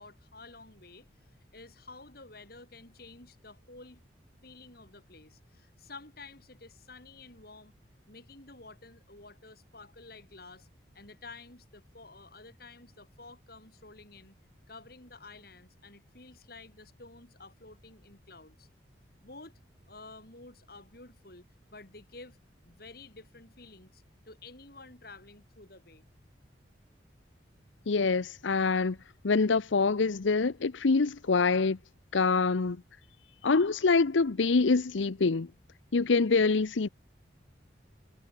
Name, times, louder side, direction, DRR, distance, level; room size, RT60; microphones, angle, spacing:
voice 1, 0.0-4.0 4.4-7.8 8.1-10.7 10.9-14.3 14.7-18.7 19.2-19.6 19.9-21.5 21.7-22.4 22.6-26.0, left 3 dB, 50° left, 4.6 m, -51 dB
voice 2, 27.9-29.0 29.2-31.8 32.1-32.8 33.4-35.5 35.9-36.9, left 4 dB, 80° left, 0.7 m, -25 dB
head